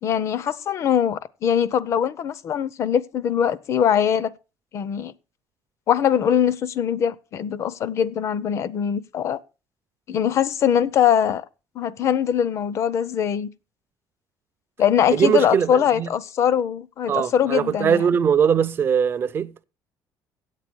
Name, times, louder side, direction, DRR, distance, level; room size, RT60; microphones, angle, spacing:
voice 1, 0.0-4.3 4.7-5.1 5.9-9.4 10.1-11.4 11.8-13.5 14.8-18.0, left 9 dB, 40° left, 0.5 m, -22 dB
voice 2, 15.1-16.1 17.1-19.6, right 7 dB, 30° right, 0.5 m, -21 dB
9.2 x 8.3 x 6.0 m
cardioid pair, 165°, 7 cm